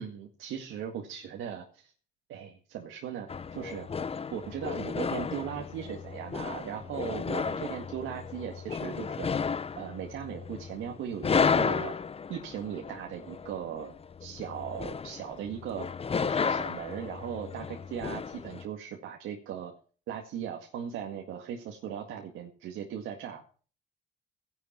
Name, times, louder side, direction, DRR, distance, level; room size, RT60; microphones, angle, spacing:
voice 1, 0.0-1.9 2.3-3.9 4.3-9.3 9.7-12.0 12.3-13.9 14.2-15.9 16.2-19.7 20.1-23.4, right 9 dB, 85° right, 2 dB, 2.0 m, -38 dB
sound 1, 3.3-18.7, left 5 dB, 30° left, 0.7 m, -33 dB
15.0 x 11.0 x 4.5 m, 0.40 s
cardioid pair, 90°, 20 cm